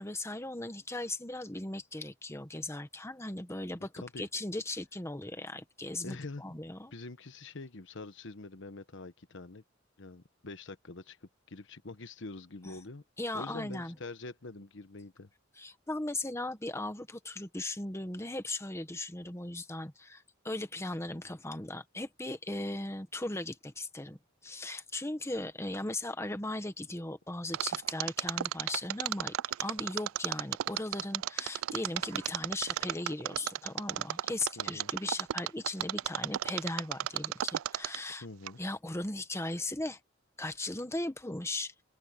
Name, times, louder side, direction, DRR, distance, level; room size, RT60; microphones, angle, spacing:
voice 1, 0.0-6.9 12.6-12.7 13.2-13.9 15.6-38.2 38.6-40.0 40.4-41.7, left 2 dB, 15° left, 1.4 m, -38 dB
voice 2, 6.0-6.5 6.9-9.6 10.0-13.0 13.3-15.3 34.6-34.9 38.2-38.6, left 3 dB, 65° left, 1.1 m, -45 dB
Mechanisms, 27.5-38.1 38.5-38.6, right 12 dB, 85° right, 0.3 m, -33 dB
open air
head